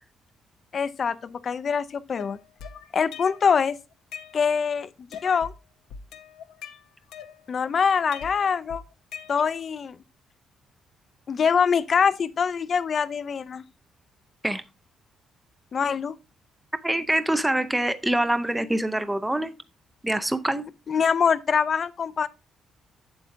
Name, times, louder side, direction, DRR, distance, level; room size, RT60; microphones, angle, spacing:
voice 1, 0.7-2.4 2.9-3.8 4.3-4.9 5.2-5.5 7.5-8.8 9.3-10.0 11.3-13.6 15.7-16.2 20.9-22.3, left 6 dB, 50° left, 0.5 m, -24 dB
sound 1, 2.1-3.6 3.9-4.7 5.1-5.6 5.9-7.7 8.1-9.7, left 7 dB, 90° left, 0.7 m, -42 dB
voice 2, 16.8-19.6 20.0-20.6, right 1 dB, 10° right, 0.6 m, -25 dB
7.9 x 7.4 x 2.6 m
cardioid pair, 90°, 0 cm